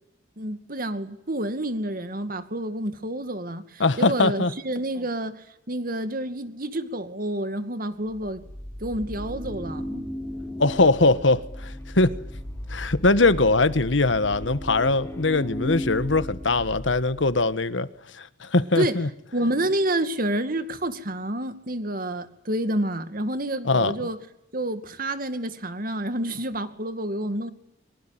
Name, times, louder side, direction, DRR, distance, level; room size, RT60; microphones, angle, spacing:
voice 1, 0.4-8.4 8.8-10.0 18.8-19.0 19.3-24.2 24.5-27.5, right 1 dB, 50° right, 2.4 m, -29 dB
voice 2, 3.8-4.5 10.6-12.1 12.7-17.9 18.1-19.1 23.6-23.9, left 2 dB, 85° left, 1.5 m, -21 dB
sound 1, 8.1-17.4, left 1 dB, 10° left, 5.3 m, -36 dB
24.0 x 23.0 x 9.2 m
head